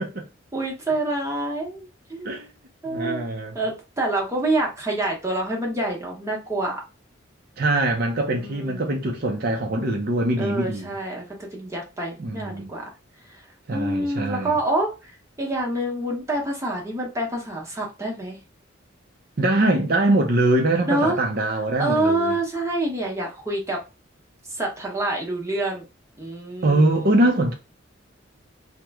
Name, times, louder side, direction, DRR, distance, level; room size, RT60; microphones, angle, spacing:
voice 1, 0.5-2.4 2.8-3.2 3.5-6.8 8.4-8.9 10.4-12.8 13.7-14.9 15.4-18.4 20.9-21.2 21.8-23.8 24.5-25.8 26.2-27.0, right 1 dB, 15° right, 0.8 m, -27 dB
voice 2, 2.9-3.6 7.6-10.9 12.2-12.7 13.7-14.6 19.4-22.4 26.6-27.5, right 2 dB, 50° right, 0.5 m, -22 dB
3.0 x 2.1 x 3.4 m
head